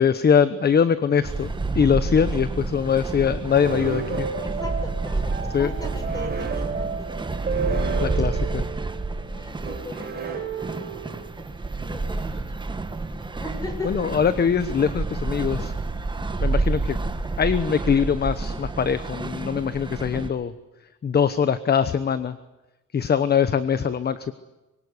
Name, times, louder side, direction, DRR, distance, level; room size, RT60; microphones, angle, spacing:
voice 1, 0.0-4.3 5.5-5.7 8.0-8.6 13.8-15.7 16.4-17.0 17.4-20.5 21.0-22.4 22.9-24.3, left 7 dB, 30° left, 13 dB, 1.0 m, -22 dB
sound 1, 1.2-20.3, right 3 dB, 15° right, 1.6 m, -29 dB
sound 2, 3.6-11.3, right 5 dB, 30° right, 5.0 m, -32 dB
voice 2, 4.4-7.3 9.2-11.5 11.8-12.7 13.4-13.9, left 2 dB, 10° left, 6 dB, 6.1 m, -39 dB
25.0 x 23.5 x 9.8 m, 1.1 s
cardioid pair, 165°, 31 cm